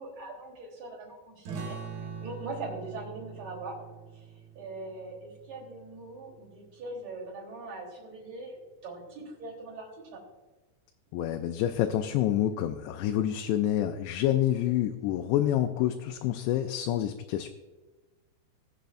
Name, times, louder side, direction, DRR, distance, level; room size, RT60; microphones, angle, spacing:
voice 1, 0.0-1.8 2.2-4.2 4.6-8.6 8.8-10.2, right 2 dB, 40° right, -3 dB, 4.3 m, -41 dB
sound 1, 1.4-6.6, right 6 dB, 65° right, 3.0 m, -43 dB
voice 2, 11.1-17.5, left 12 dB, 85° left, 5 dB, 2.7 m, -27 dB
21.0 x 7.6 x 2.6 m, 1.2 s
omnidirectional pair, 5.1 m